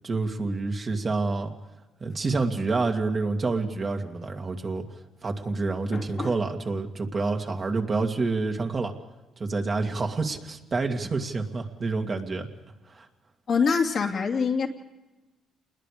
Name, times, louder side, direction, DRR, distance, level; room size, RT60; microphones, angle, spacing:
voice 1, 0.0-1.5 2.0-4.8 5.2-8.9 9.4-12.5 12.9-13.1, right 3 dB, 35° right, 3 dB, 2.4 m, -28 dB
voice 2, 5.9-6.3 13.5-14.7, left 5 dB, 55° left, 1 dB, 2.5 m, -25 dB
28.5 x 21.0 x 5.1 m, 1.1 s
cardioid pair, 90°, 0 cm